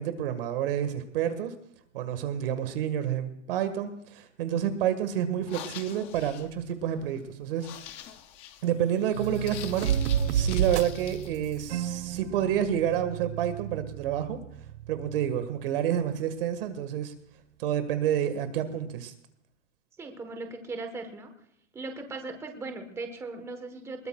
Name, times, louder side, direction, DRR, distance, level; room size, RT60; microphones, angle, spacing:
voice 1, 0.0-1.6 1.9-7.7 8.6-9.9 10.3-14.4 14.9-17.1 17.6-19.1, right 10 dB, 50° right, 9 dB, 1.7 m, -29 dB
sound 1, 5.3-11.3, left 10 dB, 15° left, 0.5 m, -45 dB
sound 2, 9.1-15.9, right 9 dB, 65° right, 0.9 m, -32 dB
voice 2, 20.0-21.3 21.7-24.1, right 3 dB, 5° right, 6 dB, 1.2 m, -38 dB
21.0 x 18.5 x 2.3 m, 0.71 s
hypercardioid pair, 165°, 36 cm